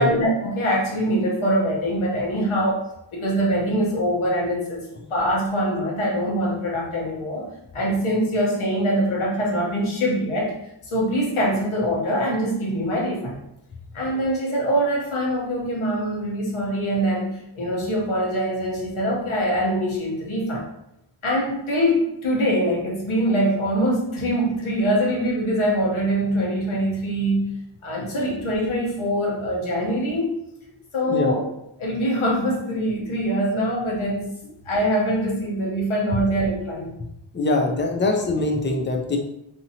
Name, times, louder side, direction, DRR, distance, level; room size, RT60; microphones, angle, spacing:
voice 1, 0.0-2.8 3.1-4.8 5.1-7.5 7.7-10.5 10.9-13.4 13.9-20.7 21.2-27.5 27.8-30.3 30.9-31.5 31.8-34.3 34.6-36.9, equal, 75° left, -3 dB, 1.0 m, -23 dB
voice 2, 37.3-39.2, left 2 dB, 25° left, 2 dB, 0.3 m, -23 dB
2.8 x 2.7 x 2.7 m, 0.83 s
wide cardioid pair, 155°, 49 cm